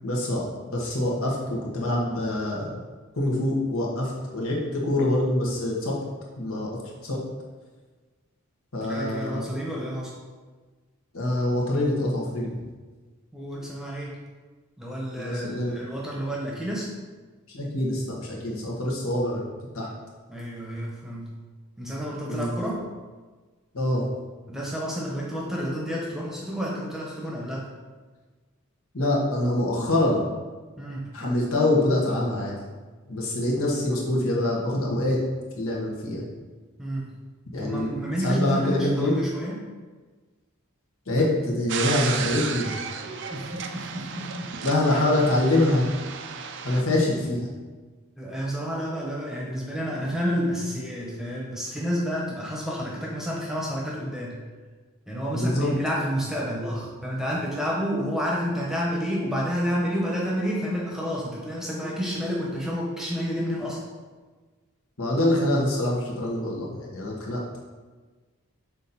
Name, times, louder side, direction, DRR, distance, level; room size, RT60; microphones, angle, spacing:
voice 1, 0.0-0.4 0.7-2.7 3.2-5.9 6.4-6.7 7.0-7.2 8.7-9.5 11.1-12.6 15.2-15.7 17.5-19.4 19.7-19.9 22.3-22.5 23.7-24.0 28.9-30.2 31.1-32.5 33.1-35.2 35.5-36.2 37.5-39.2 41.1-42.7 44.6-45.9 46.6-47.5 55.3-55.7 65.0-67.6, left 1 dB, 75° left, -3 dB, 1.4 m, -25 dB
voice 2, 8.8-10.1 13.3-14.2 14.8-16.9 20.3-21.3 21.8-22.8 24.5-27.7 30.8-31.2 36.8-37.1 37.6-39.6 43.3-44.5 48.2-54.4 55.1-63.8, equal, ahead, -4 dB, 1.0 m, -30 dB
sound 1, 41.7-46.8, right 6 dB, 55° right, 0.4 m, -33 dB
6.2 x 4.1 x 4.3 m, 1.4 s
head